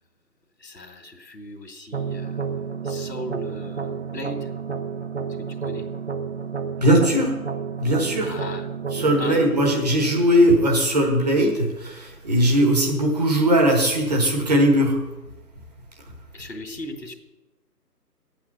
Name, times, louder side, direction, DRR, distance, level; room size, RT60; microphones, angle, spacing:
voice 1, 0.6-2.4 2.8-4.5 5.6-5.9 8.2-8.7 8.9-9.4 9.7-9.8 16.3-17.1, left 1 dB, 85° left, 5 dB, 2.2 m, -37 dB
sound 1, 1.9-10.9, right 6 dB, 45° right, 0.7 m, -31 dB
voice 2, 6.8-7.3 7.8-8.4 8.9-15.0, equal, 25° right, 1 dB, 1.4 m, -19 dB
9.6 x 8.4 x 6.7 m, 1.0 s
figure-of-eight pair, 160°, 49 cm